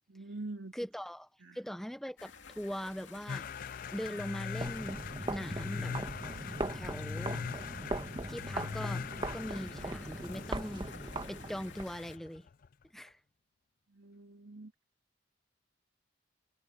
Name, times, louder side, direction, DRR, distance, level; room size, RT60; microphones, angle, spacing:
voice 1, 0.1-0.7 1.4-1.6 13.9-14.7, right 2 dB, 75° right, 2.4 m, -44 dB
voice 2, 0.7-3.5 3.9-5.0 5.3-6.0 6.7-7.4 8.3-10.9 11.3-12.5 12.9-13.2, equal, ahead, 0.6 m, -41 dB
sound 1, 2.2-12.2, left 6 dB, 65° left, 2.9 m, -53 dB
sound 2, 3.3-12.7, left 6 dB, 45° left, 0.3 m, -42 dB
sound 3, 4.5-11.9, right 2 dB, 25° right, 1.2 m, -40 dB
head